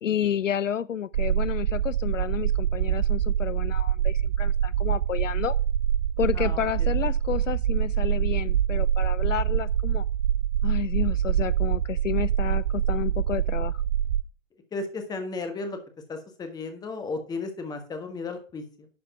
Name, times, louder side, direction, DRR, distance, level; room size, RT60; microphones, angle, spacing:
voice 1, 0.0-5.6 6.2-10.0 10.6-13.8, left 9 dB, 75° left, 0.5 m, -30 dB
sound 1, 1.1-14.2, right 10 dB, 40° right, 0.5 m, -25 dB
voice 2, 6.3-6.9 14.7-15.8 16.1-18.9, left 3 dB, 10° left, 1.4 m, -34 dB
11.5 x 4.1 x 5.7 m
figure-of-eight pair, 120°, 38 cm